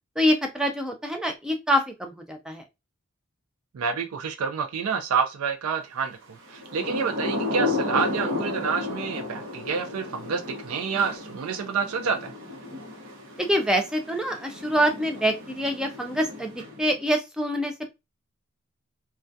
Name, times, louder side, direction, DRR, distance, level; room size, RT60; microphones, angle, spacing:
voice 1, 0.2-2.6 13.4-16.5 16.8-17.7, equal, 5° right, 0.3 m, -25 dB
voice 2, 3.7-6.2 6.5-12.3, right 5 dB, 90° right, 0.4 m, -28 dB
Thunder / Rain, 6.5-17.0, left 2 dB, 60° right, 0.9 m, -33 dB
2.2 x 2.2 x 2.5 m
head